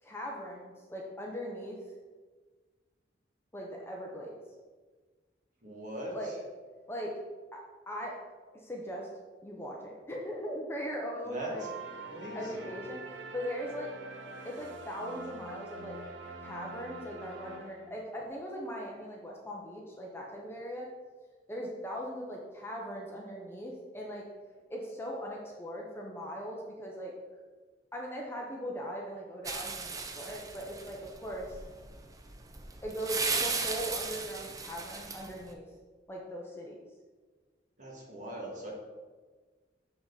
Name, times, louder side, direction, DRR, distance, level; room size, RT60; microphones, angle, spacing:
voice 1, 0.0-1.8 3.5-4.4 6.1-6.4 6.9-7.1 7.5-8.2 8.5-9.1 9.4-11.7 12.3-13.9 14.4-16.0 16.4-20.9 21.5-24.3 24.7-27.1 27.9-31.6 32.8-35.6 36.1-36.8, equal, 15° left, -1 dB, 0.8 m, -39 dB
voice 2, 5.6-6.1 11.3-11.5 12.1-12.6 37.8-38.7, right 1 dB, 45° right, -3 dB, 2.0 m, -40 dB
sound 1, 11.6-18.2, right 3 dB, 85° right, 0.9 m, -45 dB
sound 2, 29.4-35.5, right 4 dB, 20° right, 0.5 m, -36 dB
6.8 x 5.7 x 4.0 m, 1.4 s
head